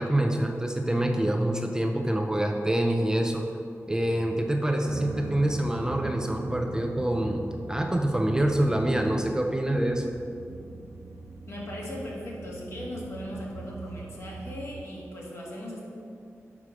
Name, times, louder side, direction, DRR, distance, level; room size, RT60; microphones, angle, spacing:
voice 1, 0.0-3.4 3.9-10.1, right 1 dB, 15° right, 2 dB, 0.5 m, -26 dB
sound 1, 4.9-14.8, right 4 dB, 90° right, 0.4 m, -41 dB
voice 2, 11.5-15.8, left 1 dB, 60° left, -4 dB, 1.5 m, -38 dB
4.8 x 4.5 x 6.1 m, 2.5 s
wide cardioid pair, 75°, 5 cm